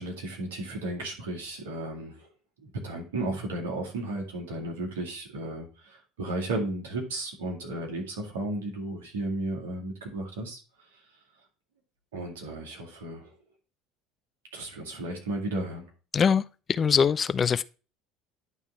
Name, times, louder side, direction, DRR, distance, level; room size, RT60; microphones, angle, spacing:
voice 1, 0.0-2.3 2.6-11.0 12.1-13.3 14.5-15.9, right 1 dB, 75° right, 2.1 m, -34 dB
voice 2, 16.1-16.4 16.7-17.6, left 6 dB, 35° left, 0.4 m, -22 dB
10.5 x 3.6 x 4.0 m
hypercardioid pair, 65°, 0 cm